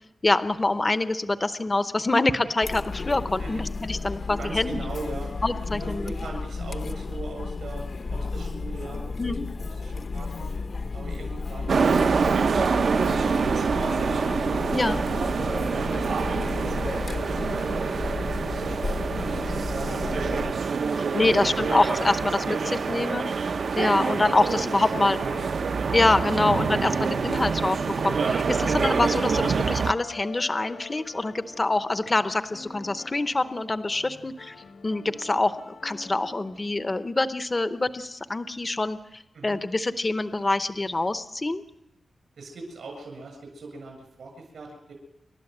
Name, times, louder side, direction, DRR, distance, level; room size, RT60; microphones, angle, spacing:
voice 1, 0.2-4.8 5.4-6.1 9.2-9.5 14.7-15.0 21.0-22.6 22.9-23.3 23.8-25.2 25.9-34.5 34.8-35.5 35.8-41.6, left 2 dB, 20° left, 11 dB, 0.7 m, -25 dB
Chatter, 2.6-20.5, left 3 dB, 50° left, 0.9 m, -33 dB
voice 2, 4.4-5.3 5.7-10.5 10.9-14.8 15.3-16.9 17.3-20.5 20.9-21.7 22.5-23.1 24.1-24.9 25.2-25.5 39.3-39.6 42.4-44.9, right 3 dB, 85° right, 2 dB, 7.5 m, -40 dB
sound 1, 11.7-29.9, right 5 dB, 65° right, 0.7 m, -26 dB
sound 2, 20.8-37.7, left 4 dB, 65° left, 1.5 m, -47 dB
29.5 x 13.0 x 7.9 m, 0.85 s
wide cardioid pair, 175°, 0 cm